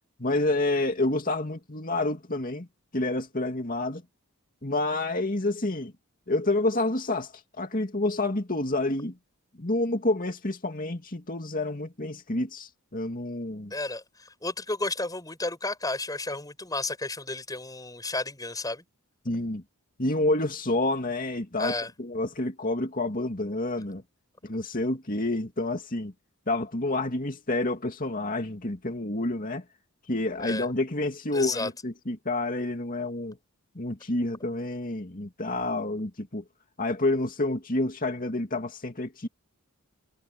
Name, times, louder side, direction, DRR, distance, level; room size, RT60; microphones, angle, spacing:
voice 1, 0.2-2.7 2.9-4.0 4.6-5.9 6.3-7.3 7.6-9.2 9.6-13.7 19.2-19.6 20.0-21.7 22.0-24.0 24.4-26.1 26.5-29.6 30.1-33.4 33.7-36.4 36.8-39.3, left 2 dB, 40° left, 2.4 m, -28 dB
voice 2, 13.7-18.8 21.6-21.9 30.4-30.7 31.3-31.7, left 2 dB, 15° left, 7.1 m, -32 dB
head